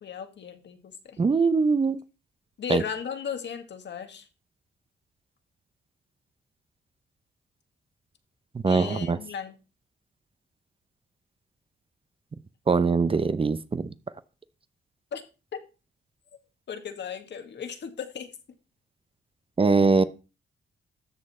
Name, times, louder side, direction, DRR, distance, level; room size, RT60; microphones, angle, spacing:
voice 1, 0.0-1.2 2.6-4.3 8.7-9.6 15.1-15.2 16.7-18.3, left 7 dB, 65° left, 7 dB, 1.9 m, -35 dB
voice 2, 1.2-2.0 2.7-2.8 8.5-9.2 12.7-13.9 19.6-20.0, right 4 dB, 30° right, 14 dB, 0.7 m, -22 dB
13.0 x 7.5 x 4.3 m, 0.32 s
cardioid pair, 110°, 19 cm